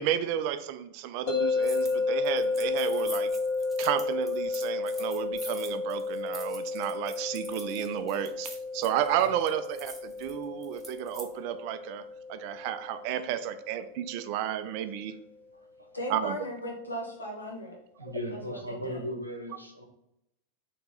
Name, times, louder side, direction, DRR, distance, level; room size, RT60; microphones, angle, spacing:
voice 1, 0.0-3.3 3.8-15.2 16.1-16.4 18.0-18.1, right 10 dB, 45° right, 11 dB, 0.3 m, -32 dB
sound 1, 1.3-14.3, left 3 dB, 55° left, 0.6 m, -32 dB
sound 2, 1.6-2.0 2.2-11.3, right 2 dB, 10° right, 0.7 m, -46 dB
voice 2, 15.9-17.8 18.3-19.0, equal, 80° left, -1 dB, 0.9 m, -37 dB
voice 3, 18.0-19.8, equal, 85° right, 2 dB, 0.7 m, -37 dB
3.3 x 2.8 x 3.9 m, 0.84 s
figure-of-eight pair, 90°, 0 cm